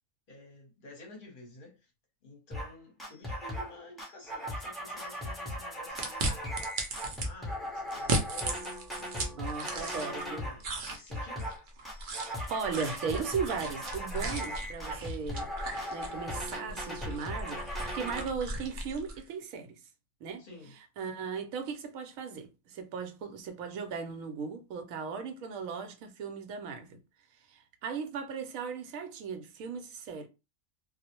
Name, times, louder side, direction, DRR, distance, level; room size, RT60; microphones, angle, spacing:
voice 1, 0.3-1.9 2.2-6.7 7.0-11.5 20.4-20.8, left 3 dB, 45° left, 0.9 m, -51 dB
sound 1, 2.5-2.7 3.0-3.7 4.0-10.6 10.9-11.6 11.8-18.2, equal, ahead, 0.5 m, -38 dB
sound 2, 6.0-7.3 7.9-10.3 10.6-19.2, right 2 dB, 60° right, 0.5 m, -37 dB
voice 2, 9.4-10.5 12.1-15.5 15.9-19.8 20.2-20.4 21.0-27.0 27.5-30.3, right 6 dB, 80° right, 1.0 m, -37 dB
2.4 x 2.0 x 2.8 m
omnidirectional pair, 1.4 m